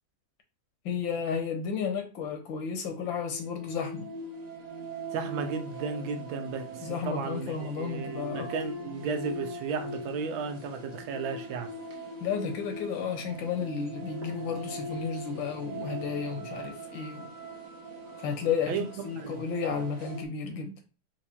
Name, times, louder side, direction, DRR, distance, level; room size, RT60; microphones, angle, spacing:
voice 1, 0.9-4.1 6.8-8.5 12.2-17.3 18.2-18.8 19.1-20.8, left 6 dB, 75° left, 1.7 m, -32 dB
sound 1, 3.0-20.3, equal, 65° right, 0.4 m, -41 dB
voice 2, 5.1-11.7 18.7-19.4, right 5 dB, 85° right, 1.6 m, -34 dB
4.8 x 2.4 x 4.3 m
omnidirectional pair, 2.1 m